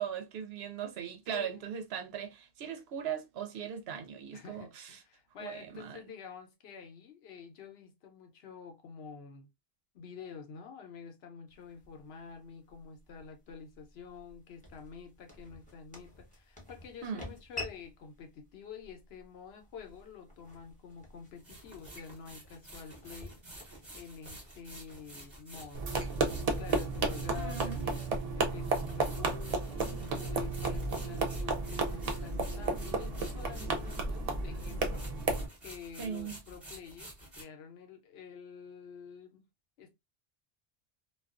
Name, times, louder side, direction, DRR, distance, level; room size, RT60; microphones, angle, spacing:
voice 1, 0.0-5.0 5.4-6.0 17.0-17.3 27.3-27.9 36.0-36.4, right 8 dB, 80° right, 0.8 m, -39 dB
voice 2, 1.3-1.7 4.3-9.5 9.9-23.4 23.7-39.4 39.8-39.9, left 6 dB, 80° left, 0.9 m, -48 dB
sound 1, 11.5-27.6, left 2 dB, 10° left, 0.7 m, -51 dB
sound 2, 19.9-20.0 21.4-34.3 34.5-37.4, right 1 dB, 30° right, 0.9 m, -50 dB
sound 3, 25.7-35.5, right 3 dB, 50° right, 0.5 m, -33 dB
2.3 x 2.3 x 2.3 m
omnidirectional pair, 1.0 m